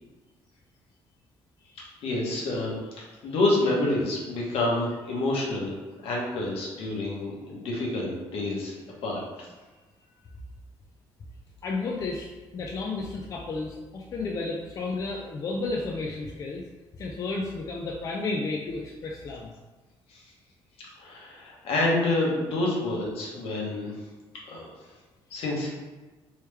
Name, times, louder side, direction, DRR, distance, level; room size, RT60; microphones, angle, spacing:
voice 1, 2.0-5.7 6.0-8.7 9.0-9.2 20.1-20.2 21.0-23.9 24.5-24.7 25.3-25.7, left 2 dB, 70° left, -3 dB, 1.1 m, -28 dB
voice 2, 11.6-12.3 12.5-16.6 17.0-19.5, left 3 dB, 35° left, -1 dB, 0.4 m, -32 dB
3.2 x 3.0 x 3.3 m, 1.2 s
cardioid pair, 155°, 10 cm